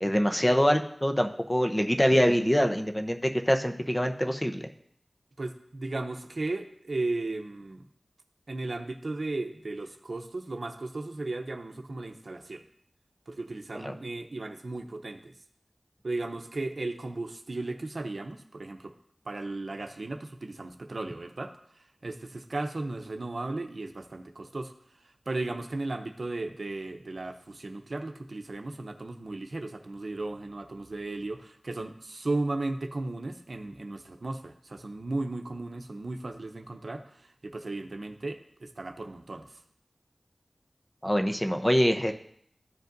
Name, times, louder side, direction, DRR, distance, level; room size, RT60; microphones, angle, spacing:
voice 1, 0.0-4.6 13.8-13.9 41.0-42.1, equal, 15° left, 5 dB, 0.7 m, -24 dB
voice 2, 5.4-7.8 8.5-12.6 13.3-15.3 16.0-18.9 19.2-24.7 25.3-39.6, right 2 dB, 70° right, 6 dB, 0.7 m, -35 dB
14.0 x 5.2 x 2.6 m, 0.65 s
wide cardioid pair, 55°, 0 cm